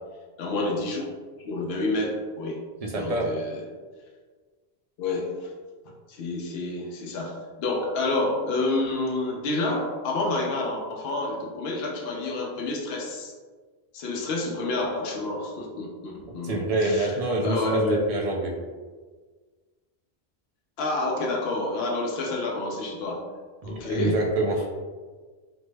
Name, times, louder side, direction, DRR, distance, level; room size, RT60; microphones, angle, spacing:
voice 1, 0.4-1.0 1.4-2.6 2.9-3.6 5.0-5.5 6.1-13.3 13.9-17.1 17.4-18.0 20.8-23.2 23.6-24.2, left 2 dB, 75° left, -1 dB, 0.8 m, -29 dB
voice 2, 2.8-3.4 16.4-18.6 23.6-24.7, right 2 dB, 50° right, 0 dB, 0.4 m, -26 dB
3.4 x 2.0 x 3.2 m, 1.4 s
omnidirectional pair, 1.0 m